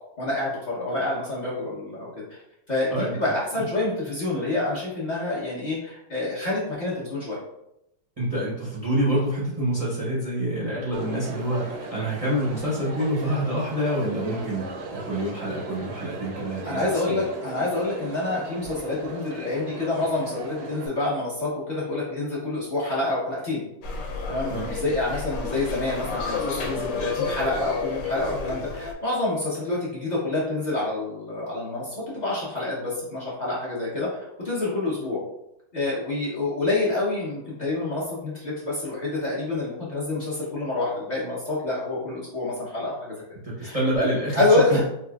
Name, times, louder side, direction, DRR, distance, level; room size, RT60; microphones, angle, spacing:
voice 1, 0.2-2.2 2.7-7.4 16.6-23.6 24.3-35.2 35.7-43.1 43.6-43.8 44.3-44.8, left 2 dB, 55° left, -8 dB, 0.5 m, -27 dB
voice 2, 2.9-3.3 8.2-14.6 14.9-17.2 24.5-24.7 43.4-44.8, right 1 dB, 55° right, -7 dB, 0.3 m, -27 dB
Crowd, 10.9-20.9, right 2 dB, 75° right, 0.9 m, -38 dB
sound 1, 23.8-28.9, left 4 dB, 80° left, 1.3 m, -31 dB
4.1 x 2.4 x 2.3 m, 0.84 s
omnidirectional pair, 2.0 m